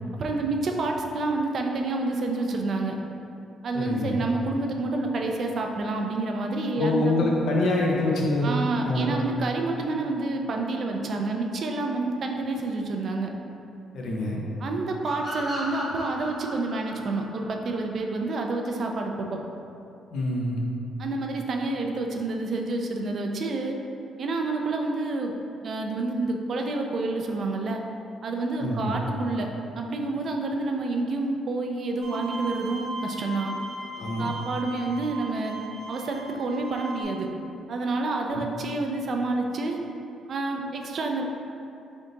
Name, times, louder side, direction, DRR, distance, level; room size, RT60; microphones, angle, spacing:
voice 1, 0.1-3.0 3.6-7.2 8.4-13.3 14.6-19.4 21.0-23.8 24.2-25.3 25.6-27.8 28.2-29.5 29.7-33.6 34.2-35.6 35.9-37.3 37.7-39.8 40.3-41.2, right 2 dB, 55° right, 2 dB, 0.4 m, -28 dB
voice 2, 3.7-4.2 6.8-8.5 8.8-9.2 13.9-14.4 20.1-20.6 28.6-29.0 34.0-34.3 38.2-38.4, left 2 dB, 75° left, -2 dB, 0.7 m, -25 dB
sound 1, 15.0-18.4, equal, 5° right, 0.9 m, -36 dB
Bowed string instrument, 32.0-37.0, right 2 dB, 75° right, 0.8 m, -38 dB
3.4 x 2.7 x 3.8 m, 2.7 s
cardioid pair, 90°, 0 cm